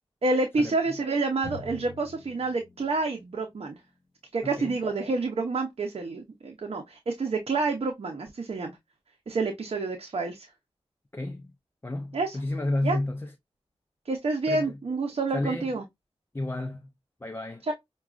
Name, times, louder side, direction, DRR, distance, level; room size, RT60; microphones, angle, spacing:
voice 1, 0.2-3.8 4.3-8.8 9.3-10.5 12.1-12.4 12.8-13.0 14.1-15.8 17.7-17.8, right 3 dB, 65° right, 0.7 m, -28 dB
Drum, 1.4-5.0, left 2 dB, ahead, 2.1 m, -46 dB
voice 2, 11.1-11.5 11.8-13.3 14.5-14.8 15.3-15.8 16.3-16.9 17.2-17.6, left 1 dB, 20° left, 0.4 m, -31 dB
5.8 x 2.3 x 2.4 m
wide cardioid pair, 90°, 11 cm